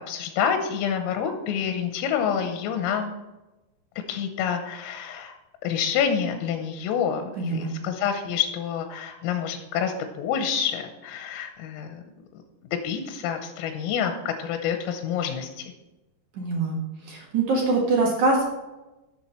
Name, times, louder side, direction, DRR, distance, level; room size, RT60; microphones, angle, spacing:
voice 1, 0.1-3.1 4.1-5.3 5.6-12.0 12.7-15.7, left 7 dB, 85° left, 6 dB, 3.5 m, -27 dB
voice 2, 7.4-7.7 16.3-16.8 17.0-18.4, right 3 dB, 65° right, -1 dB, 2.0 m, -23 dB
11.5 x 7.4 x 4.4 m, 1.0 s
omnidirectional pair, 6.0 m